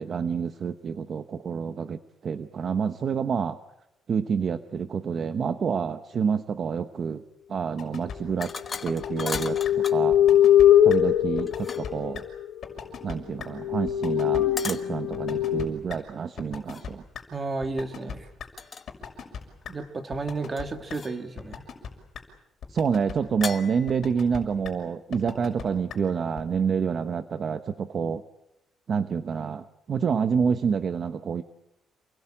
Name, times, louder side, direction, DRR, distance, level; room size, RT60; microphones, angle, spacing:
voice 1, 0.0-3.6 4.1-7.2 7.5-8.5 8.8-10.2 10.8-12.2 13.0-17.0 22.7-28.2 28.9-31.4, right 6 dB, 35° right, 9 dB, 0.9 m, -28 dB
sound 1, 7.8-8.2 8.4-8.5 8.9-9.4 9.6-9.7 10.1-10.7 10.9-11.0 11.4-11.9 12.1-12.2 12.6-13.1 13.4-13.5 13.9-14.4 14.7-14.8 15.1-15.6 15.9-16.0 16.4-17.2 17.6-18.5 18.9-19.4 19.6-19.7 20.1-20.6 20.9-21.0 21.4-21.9 22.1-22.2 22.6-23.1 23.4-23.5 23.9-24.4 24.6-24.7 25.1-25.6 25.9-26.0 26.4-26.5, left 7 dB, 45° left, 6.3 m, -37 dB
sound 2, 8.4-10.1 11.3-12.1 14.6-14.9 16.7-16.9 18.6-18.9 19.2-19.8 20.6-21.3 23.4-24.0, left 5 dB, 25° left, 1.3 m, -37 dB
sound 3, 8.9-12.5 13.1-13.2 13.6-15.7, left 10 dB, 65° left, 1.5 m, -22 dB
voice 2, 17.3-18.3 19.7-21.6, right 3 dB, 20° right, 6 dB, 2.0 m, -32 dB
28.5 x 21.0 x 8.9 m, 0.87 s
cardioid pair, 165°, 0 cm